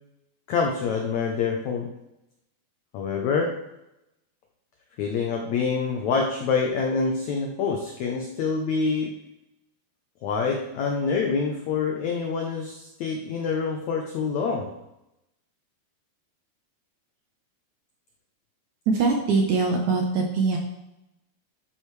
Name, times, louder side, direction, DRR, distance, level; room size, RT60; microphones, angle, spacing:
voice 1, 0.5-1.9 2.9-3.6 5.0-9.1 10.2-14.7, left 5 dB, 85° left, 2 dB, 1.6 m, -26 dB
voice 2, 18.9-20.6, right 4 dB, 70° right, 2 dB, 1.9 m, -22 dB
12.5 x 9.0 x 3.2 m, 0.91 s
omnidirectional pair, 4.4 m